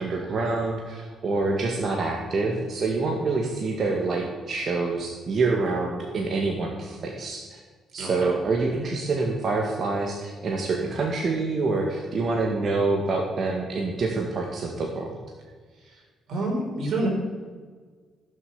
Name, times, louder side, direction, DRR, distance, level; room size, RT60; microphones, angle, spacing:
voice 1, 0.0-7.6 7.9-15.1, right 3 dB, 50° right, 1 dB, 2.0 m, -26 dB
voice 2, 8.0-8.3 16.3-17.1, right 2 dB, 65° right, 0 dB, 4.7 m, -27 dB
15.5 x 7.2 x 7.2 m, 1.5 s
cardioid pair, 90°, 0 cm